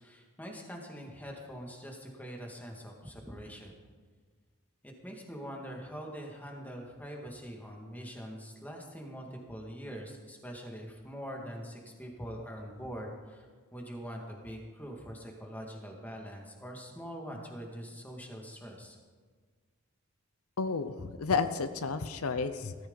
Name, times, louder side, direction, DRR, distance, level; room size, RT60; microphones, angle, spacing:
voice 1, 0.0-3.8 4.8-13.5 13.7-19.0, equal, 10° left, 0 dB, 2.1 m, -43 dB
voice 2, 20.6-22.7, left 4 dB, 80° left, 10 dB, 0.7 m, -31 dB
18.0 x 14.0 x 4.0 m, 1.5 s
head